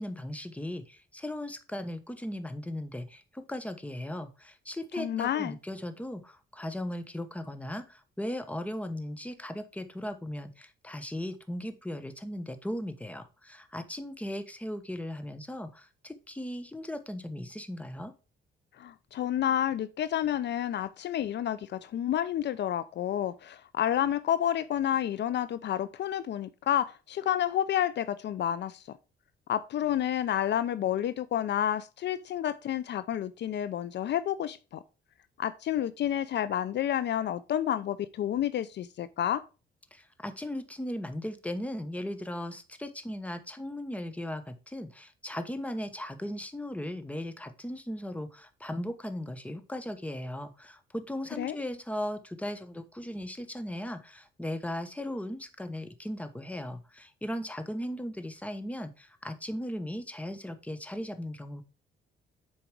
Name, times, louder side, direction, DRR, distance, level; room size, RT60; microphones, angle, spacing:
voice 1, 0.0-18.1 39.9-61.6, left 1 dB, 5° left, 1.1 m, -37 dB
voice 2, 5.0-5.6 18.8-29.0 29.5-34.8 35.4-39.4 51.4-51.6, left 10 dB, 60° left, 0.5 m, -30 dB
7.1 x 4.8 x 4.6 m
cardioid pair, 90°, 20 cm